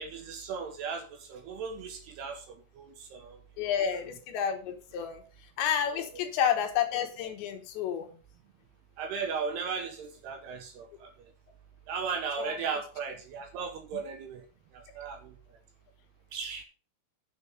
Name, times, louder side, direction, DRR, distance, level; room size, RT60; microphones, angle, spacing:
voice 1, 0.0-3.7 9.0-11.1 11.9-14.4 14.7-15.4 16.3-16.6, right 5 dB, 70° right, 6 dB, 2.8 m, -36 dB
voice 2, 3.6-5.2 5.6-8.1 12.4-12.6, left 8 dB, 70° left, 5 dB, 3.4 m, -30 dB
9.3 x 7.2 x 6.4 m, 0.37 s
omnidirectional pair, 5.7 m